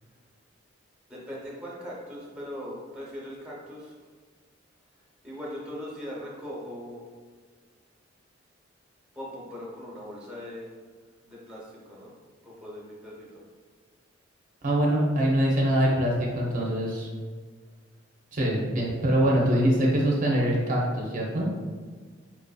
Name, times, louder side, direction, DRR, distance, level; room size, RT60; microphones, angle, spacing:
voice 1, 1.1-4.0 5.2-7.0 9.1-10.7 11.3-12.1 12.4-13.4, equal, 5° right, -5 dB, 0.7 m, -40 dB
voice 2, 14.6-17.1 18.3-21.5, equal, 40° right, -3 dB, 0.5 m, -24 dB
4.4 x 2.5 x 2.2 m, 1.5 s
head